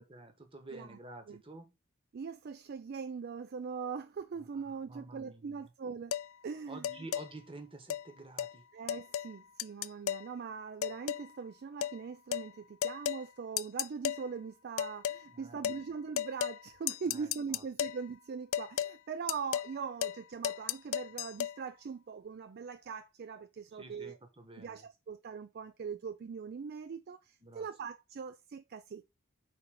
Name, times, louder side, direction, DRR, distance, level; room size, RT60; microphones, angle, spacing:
voice 1, 0.0-1.7 4.5-5.7 6.7-8.7 15.3-15.6 17.1-17.6 23.7-24.9 27.4-27.6, right 2 dB, 25° right, 1.3 m, -50 dB
voice 2, 2.1-6.1 6.4-7.0 8.7-24.2 24.6-29.1, right 5 dB, 45° right, 0.3 m, -41 dB
sound 1, 6.1-6.3 6.8-7.3 7.9-8.0 8.4-8.5 8.9-9.3 9.6-10.3 10.8-11.3 11.8-12.0 12.3-12.5 12.8-13.2 13.6-14.2 14.8-15.2 15.6-15.8 16.2-16.6 16.9-18.0 18.5-18.9 19.3-19.7 20.0-20.2 20.4-21.5, left 10 dB, 70° left, 0.3 m, -34 dB
5.0 x 4.1 x 5.7 m
head